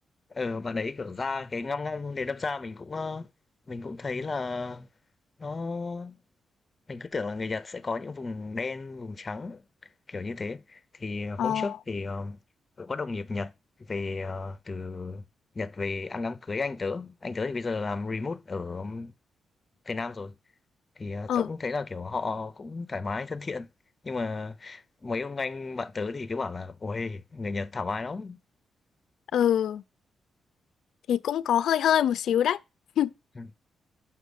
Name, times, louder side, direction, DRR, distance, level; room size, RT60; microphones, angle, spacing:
voice 1, 0.3-3.3 3.7-4.9 5.4-6.2 6.9-9.6 10.1-12.4 12.8-13.5 13.9-15.2 15.5-19.1 19.9-20.3 21.0-23.7 24.0-28.4 33.4-33.5, left 3 dB, 25° left, 0.6 m, -33 dB
voice 2, 29.3-29.8 31.1-32.6 33.0-33.1, left 10 dB, 85° left, 0.4 m, -24 dB
6.5 x 5.8 x 6.2 m
wide cardioid pair, 145°, 0 cm